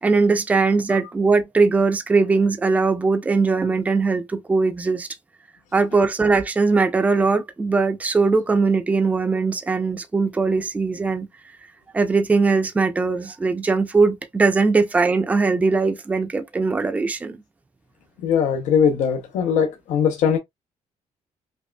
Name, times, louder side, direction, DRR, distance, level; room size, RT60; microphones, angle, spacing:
voice 1, 0.0-5.1 5.7-11.3 11.9-17.3, right 4 dB, 10° right, 0.4 m, -20 dB
voice 2, 18.2-20.4, left 7 dB, 80° left, 0.7 m, -20 dB
5.2 x 2.4 x 2.2 m
cardioid pair, 155°, 12 cm